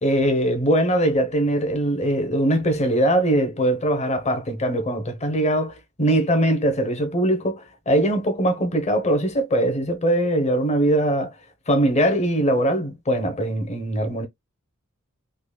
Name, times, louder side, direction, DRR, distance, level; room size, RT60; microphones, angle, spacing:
voice 1, 0.0-11.3 11.7-14.3, right 1 dB, 35° left, 1.0 m, -21 dB
4.1 x 2.9 x 2.3 m
head